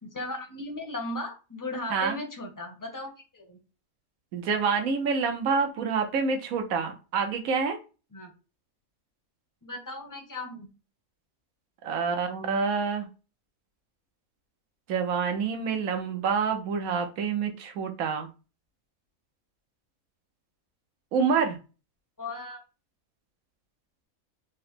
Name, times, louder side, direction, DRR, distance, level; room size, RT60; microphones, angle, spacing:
voice 1, 0.0-3.6 8.1-8.3 9.6-10.7 22.2-22.6, left 1 dB, 15° left, 2 dB, 0.7 m, -36 dB
voice 2, 4.3-7.8 11.8-13.1 14.9-18.3 21.1-21.6, right 5 dB, 80° right, 4 dB, 1.2 m, -27 dB
3.9 x 2.1 x 4.1 m, 0.32 s
omnidirectional pair, 1.4 m